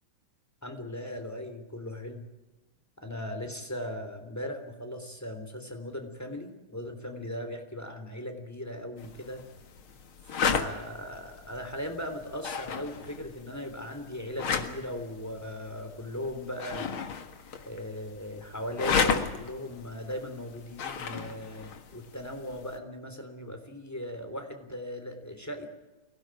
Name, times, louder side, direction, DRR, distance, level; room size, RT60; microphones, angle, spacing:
voice 1, 0.6-2.2 3.0-9.4 10.2-17.0 17.6-25.7, left 1 dB, 5° left, 6 dB, 3.4 m, -38 dB
sound 1, 9.0-22.8, left 6 dB, 75° left, 2.5 m, -35 dB
24.5 x 17.5 x 9.1 m, 1.1 s
omnidirectional pair, 2.3 m